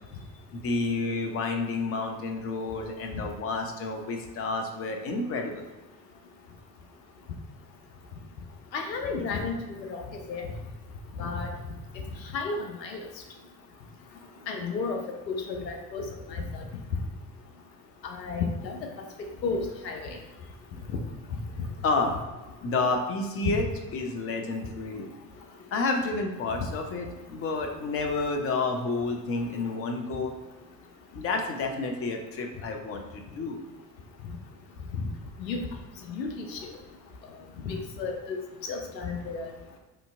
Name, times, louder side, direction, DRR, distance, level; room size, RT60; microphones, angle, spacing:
voice 1, 0.5-5.7 21.8-22.2 22.6-23.6 23.9-25.1 25.7-30.3 31.1-33.6, left 3 dB, 30° left, 3 dB, 0.7 m, -30 dB
voice 2, 8.7-10.0 10.3-10.5 11.2-11.5 12.3-13.1 14.5-15.0 15.3-16.6 18.0-18.8 19.2-20.2 23.4-23.6 34.9-35.0 35.4-35.6 36.1-36.7 37.6-38.4 38.6-39.5, left 4 dB, 80° left, 3 dB, 0.7 m, -32 dB
5.1 x 2.8 x 3.4 m, 1.2 s
figure-of-eight pair, 65°, 50 cm